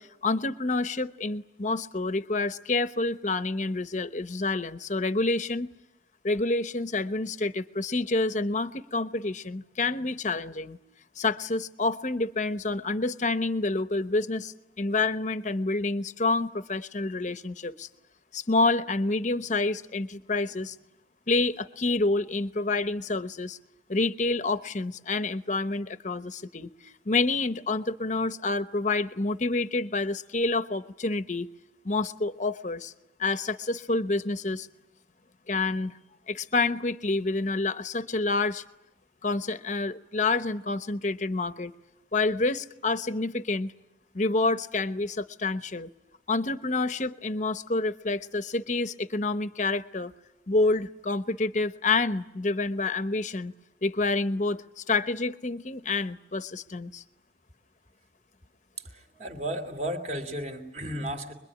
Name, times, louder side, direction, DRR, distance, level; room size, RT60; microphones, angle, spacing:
voice 1, 0.0-5.7 6.2-10.8 11.2-17.9 18.3-20.7 21.3-23.6 23.9-31.5 31.8-32.9 33.2-34.7 35.5-35.9 36.3-38.6 39.2-41.7 42.1-43.7 44.1-45.9 46.3-50.1 50.5-53.5 53.8-57.0, left 3 dB, 40° left, 11 dB, 0.9 m, -28 dB
voice 2, 58.8-61.3, right 1 dB, 40° right, 5 dB, 2.9 m, -34 dB
25.0 x 22.0 x 10.0 m, 0.92 s
head